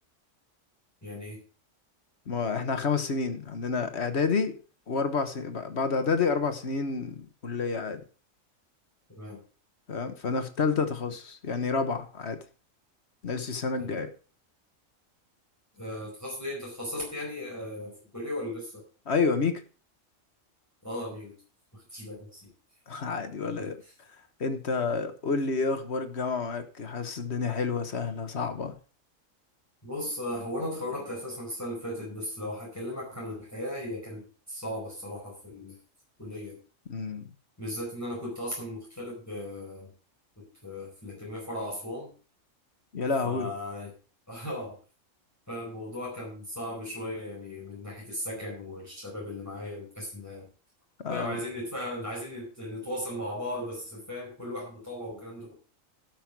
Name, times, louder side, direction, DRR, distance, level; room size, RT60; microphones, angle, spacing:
voice 1, 1.0-1.4 9.1-9.4 13.8-14.0 15.7-18.8 20.8-21.3 21.7-22.5 23.6-23.9 29.8-34.2 34.5-35.8 36.2-36.6 37.6-39.9 40.4-42.1 43.2-43.9 44.3-44.8 45.5-50.5 51.1-55.5, left 1 dB, 10° left, 4.7 m, -37 dB
voice 2, 2.3-4.6 4.9-8.0 9.9-12.4 13.2-14.1 19.1-19.6 22.9-23.7 24.4-28.7 36.9-37.2 42.9-43.5 51.0-51.4, left 4 dB, 55° left, 1.5 m, -29 dB
12.5 x 6.1 x 5.9 m
omnidirectional pair, 1.4 m